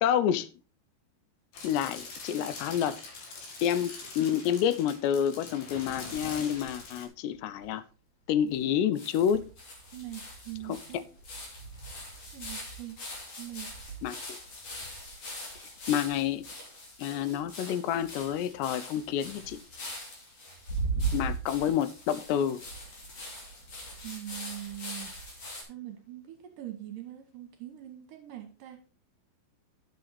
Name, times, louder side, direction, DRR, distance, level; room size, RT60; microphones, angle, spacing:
voice 1, 0.0-0.5 1.6-3.0 3.6-7.8 8.3-9.5 10.6-11.0 14.0-14.2 15.9-16.4 17.0-19.6 21.1-22.6, left 9 dB, 85° left, 2.8 m, -28 dB
sound 1, 1.5-7.1, left 3 dB, 60° left, 4.0 m, -43 dB
sound 2, 5.9-6.8 7.3-7.4 7.6-7.7 8.5-8.6 9.0-25.6, right 2 dB, 40° left, 3.6 m, -40 dB
voice 2, 9.9-11.1 12.3-13.0 13.4-14.0 24.0-25.1 25.7-28.8, right 14 dB, 65° right, 2.4 m, -42 dB
10.5 x 7.5 x 4.1 m
omnidirectional pair, 4.9 m